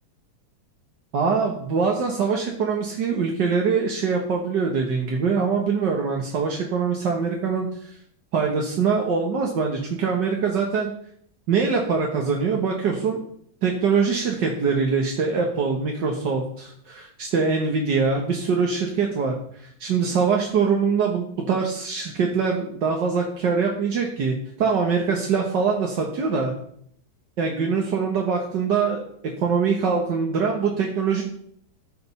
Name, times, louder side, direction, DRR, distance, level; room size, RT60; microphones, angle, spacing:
voice 1, 1.1-7.9 8.3-10.9 11.5-13.2 13.6-26.5 27.4-29.0 29.4-31.2, right 5 dB, 75° right, 1 dB, 1.9 m, -23 dB
13.5 x 5.2 x 5.6 m, 0.65 s
omnidirectional pair, 1.9 m